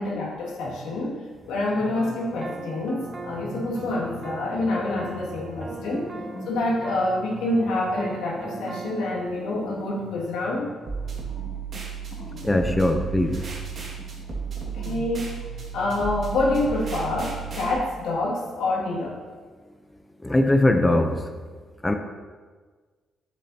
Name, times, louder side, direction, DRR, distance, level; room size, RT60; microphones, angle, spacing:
voice 1, 0.0-6.1 6.5-10.7 14.7-15.4 15.7-19.2, left 2 dB, 90° left, -3 dB, 2.1 m, -27 dB
sound 1, 1.4-2.8 3.2-17.1, left 2 dB, 45° left, 2.2 m, -43 dB
sound 2, 2.0-9.3, right 4 dB, 35° right, 0.7 m, -40 dB
sound 3, 10.9-17.7, right 7 dB, 55° right, 1.9 m, -34 dB
voice 2, 12.4-13.4 20.2-21.2 21.8-22.0, left 1 dB, 15° left, 5 dB, 0.6 m, -20 dB
10.5 x 7.4 x 2.8 m, 1.4 s
cardioid pair, 90°, 0 cm